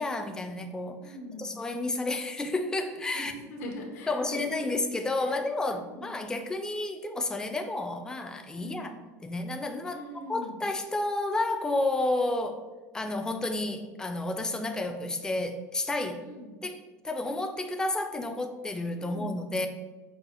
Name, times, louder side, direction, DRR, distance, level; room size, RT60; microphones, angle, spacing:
voice 1, 0.0-1.0 1.4-3.3 4.1-8.9 9.2-12.6 12.9-16.2 16.6-19.7, left 2 dB, 10° left, 6 dB, 0.3 m, -31 dB
voice 2, 1.0-1.5 3.1-4.6 5.2-5.3 5.6-6.2 8.6-9.0 9.9-10.6 16.2-16.6 19.0-19.4, left 1 dB, 80° left, 2 dB, 0.7 m, -42 dB
5.4 x 2.0 x 2.8 m, 1.3 s
supercardioid pair, 100°, 8 cm